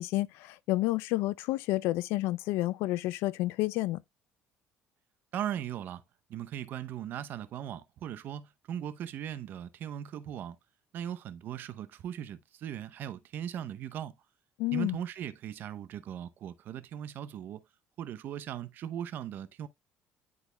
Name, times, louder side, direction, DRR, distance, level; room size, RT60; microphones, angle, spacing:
voice 1, 0.0-4.0 14.6-15.0, left 18 dB, 90° left, 0.4 m, -30 dB
voice 2, 5.3-6.0 6.3-10.6 10.9-14.1 14.7-17.6 18.0-19.7, right 10 dB, 55° right, 0.7 m, -38 dB
11.0 x 4.0 x 2.2 m
cardioid pair, 125°, 4 cm